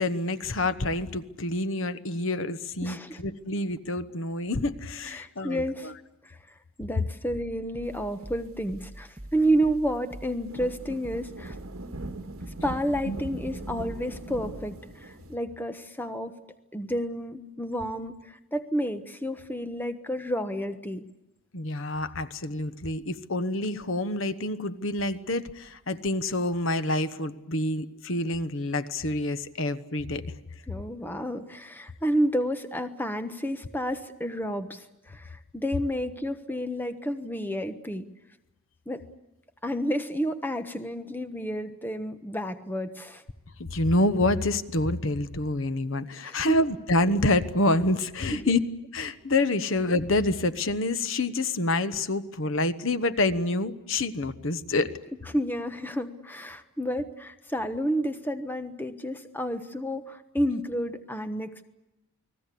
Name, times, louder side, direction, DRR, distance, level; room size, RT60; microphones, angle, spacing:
voice 1, 0.0-5.9 13.0-13.2 21.5-30.2 43.6-48.6 48.9-54.9, left 2 dB, 60° left, 12 dB, 1.2 m, -27 dB
voice 2, 2.8-3.2 5.0-5.9 6.2-6.4 6.8-11.6 12.6-16.3 16.7-21.1 30.7-38.1 38.9-39.0 39.6-43.2 46.2-46.6 55.3-61.7, equal, 10° left, 9 dB, 1.1 m, -30 dB
sound 1, 7.3-14.8, right 1 dB, 20° right, 1.5 m, -45 dB
sound 2, 10.1-10.2 10.3-15.3, right 2 dB, 75° right, 1.8 m, -40 dB
29.5 x 20.5 x 8.4 m, 0.91 s
head